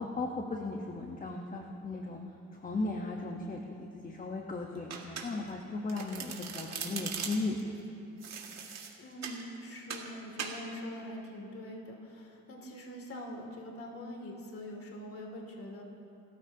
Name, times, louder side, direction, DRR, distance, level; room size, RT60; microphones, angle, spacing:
voice 1, 0.0-2.2 2.6-7.6, left 3 dB, 25° left, 1 dB, 1.2 m, -36 dB
Domestic sounds home sounds, 4.9-5.6 5.9-7.6 8.2-9.4 9.9-10.1 10.4-10.6, right 6 dB, 60° right, 2.1 m, -40 dB
voice 2, 9.0-15.8, left 1 dB, 45° left, 0 dB, 2.6 m, -43 dB
30.0 x 14.0 x 2.9 m, 2.8 s
cardioid pair, 90°, 30 cm